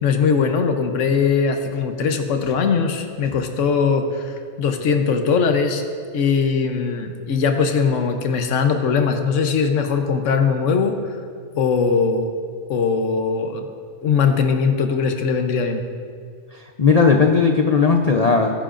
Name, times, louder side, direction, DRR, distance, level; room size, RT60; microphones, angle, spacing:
voice 1, 0.0-5.8 6.1-11.0 11.5-12.3 12.7-13.7 14.0-15.8, left 5 dB, 75° left, 6 dB, 1.2 m, -20 dB
voice 2, 16.5-18.6, left 5 dB, 40° left, 2 dB, 0.6 m, -17 dB
21.0 x 10.5 x 2.6 m, 2.1 s
omnidirectional pair, 1.3 m